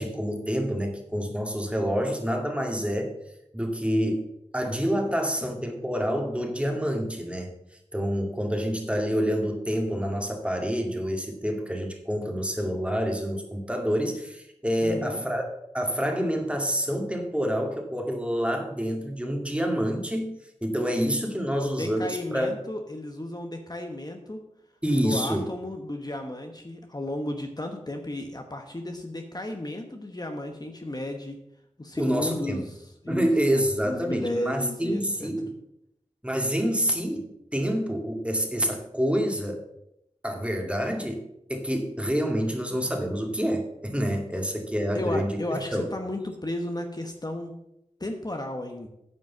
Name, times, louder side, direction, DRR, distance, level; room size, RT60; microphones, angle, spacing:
voice 1, 0.0-3.1 3.5-4.3 4.5-7.5 7.9-15.5 15.7-20.3 20.6-22.5 24.8-25.5 32.0-32.6 33.1-35.5 36.2-39.6 40.2-45.9, equal, 10° right, 2 dB, 2.1 m, -27 dB
voice 2, 14.8-15.2 21.5-24.4 24.9-31.4 31.8-35.3 44.9-47.5 48.0-48.9, left 1 dB, 35° left, 4 dB, 1.1 m, -34 dB
9.4 x 5.3 x 7.2 m, 0.82 s
wide cardioid pair, 45°, 12 cm